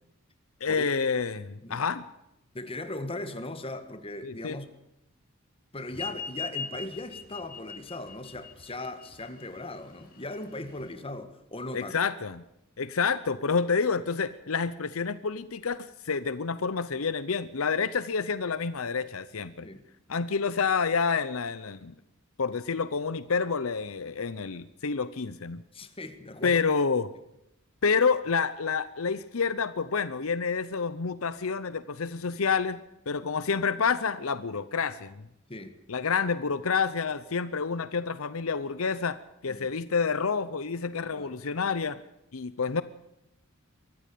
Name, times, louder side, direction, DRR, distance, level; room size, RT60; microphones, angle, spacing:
voice 1, 0.6-2.0 4.2-4.6 11.7-12.4 12.8-19.7 20.1-21.9 22.4-25.6 26.4-27.1 27.8-35.2 35.9-42.0 42.3-42.8, left 5 dB, 75° left, 15 dB, 0.8 m, -28 dB
voice 2, 2.5-4.7 5.7-12.0 19.6-19.8 25.7-26.6 35.5-35.8 39.5-39.7 41.1-41.4, left 2 dB, 25° left, 9 dB, 1.7 m, -38 dB
sound 1, 5.9-10.9, left 5 dB, 45° left, 7.3 m, -40 dB
23.5 x 14.5 x 8.5 m, 0.88 s
head